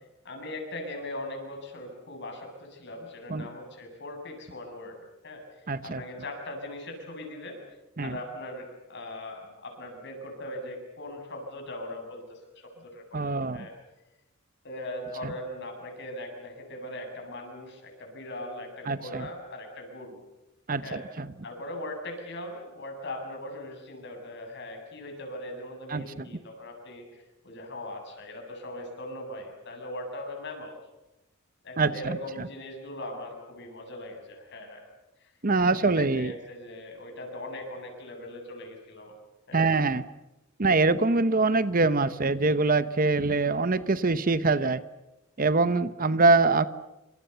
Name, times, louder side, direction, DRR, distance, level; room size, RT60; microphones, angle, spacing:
voice 1, 0.2-7.6 8.0-13.7 14.6-20.2 20.8-21.0 21.4-30.7 31.6-34.8 35.2-35.3 35.6-39.1 39.5-39.7, left 1 dB, 55° left, 3 dB, 7.9 m, -40 dB
voice 2, 5.7-6.0 8.0-8.2 13.1-13.7 15.2-15.3 18.9-19.3 20.7-21.3 25.9-26.3 31.8-32.5 35.4-36.3 39.5-40.0 40.6-44.8 45.4-46.7, right 3 dB, 40° right, 14 dB, 0.9 m, -24 dB
28.0 x 26.5 x 6.9 m, 0.98 s
head